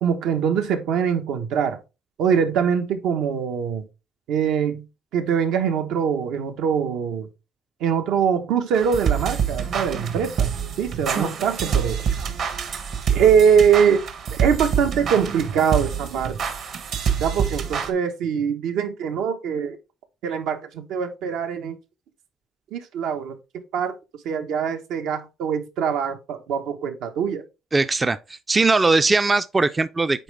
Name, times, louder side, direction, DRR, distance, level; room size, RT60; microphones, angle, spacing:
voice 1, 0.0-1.8 2.2-3.8 4.3-4.8 5.1-7.3 7.8-10.5 10.8-12.0 13.1-14.0 14.3-16.4 17.2-19.8 20.2-21.8 22.7-23.4 23.7-23.9 24.2-27.4, right 7 dB, 85° right, 1.2 m, -23 dB
sound 1, 8.7-17.9, right 7 dB, 55° right, 1.2 m, -26 dB
voice 2, 27.7-30.2, right 3 dB, 15° right, 0.3 m, -20 dB
9.0 x 4.2 x 3.4 m
cardioid pair, 155°, 0 cm